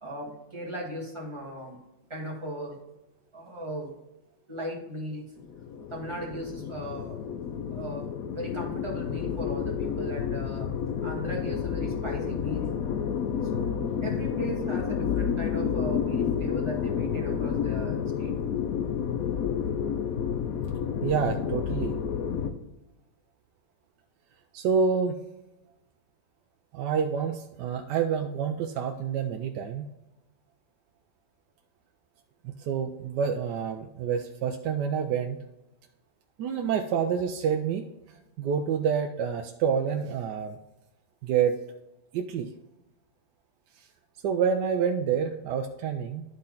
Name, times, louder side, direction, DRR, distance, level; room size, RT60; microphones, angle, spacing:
voice 1, 0.0-1.8 2.1-2.8 3.3-3.9 4.5-5.3 5.9-7.2 7.7-8.1 8.3-10.7 11.0-12.7 13.4-13.7 14.0-18.3, equal, 15° right, -2 dB, 1.9 m, -37 dB
sound 1, 5.4-22.5, left 7 dB, 65° left, 1.0 m, -30 dB
voice 2, 21.0-22.0 24.5-25.2 26.7-29.9 32.4-35.4 36.4-37.8 38.4-40.6 41.2-41.6 42.1-42.5 44.2-46.2, right 7 dB, 75° right, 5 dB, 1.2 m, -28 dB
11.5 x 4.3 x 3.9 m, 0.96 s
omnidirectional pair, 1.9 m